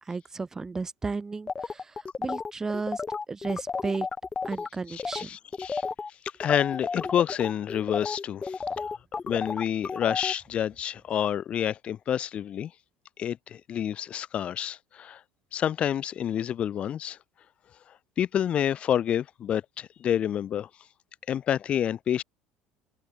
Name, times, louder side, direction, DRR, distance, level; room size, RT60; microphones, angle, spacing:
voice 1, 0.1-3.0 3.3-4.1 4.4-5.3, right 4 dB, 20° right, 2.7 m, -33 dB
sound 1, 1.5-4.7 5.0-5.2 5.5-10.3, left 4 dB, 20° left, 4.6 m, -32 dB
voice 2, 4.9-5.8 6.4-8.6 9.3-12.7 13.2-15.2 15.5-17.2 18.2-20.7 21.3-22.2, left 10 dB, 40° left, 6.4 m, -28 dB
supercardioid pair, 115°, 3 cm